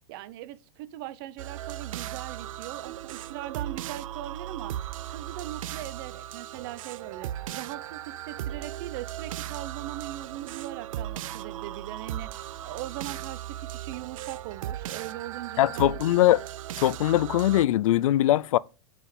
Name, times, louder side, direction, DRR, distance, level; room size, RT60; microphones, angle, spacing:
voice 1, 0.1-4.7 5.1-15.9, right 14 dB, 45° right, 0.8 m, -40 dB
sound 1, 1.4-17.6, right 12 dB, 75° right, 0.6 m, -37 dB
voice 2, 15.6-16.4 16.8-18.6, left 13 dB, 75° left, 0.5 m, -21 dB
6.8 x 5.0 x 7.1 m
supercardioid pair, 160°, 17 cm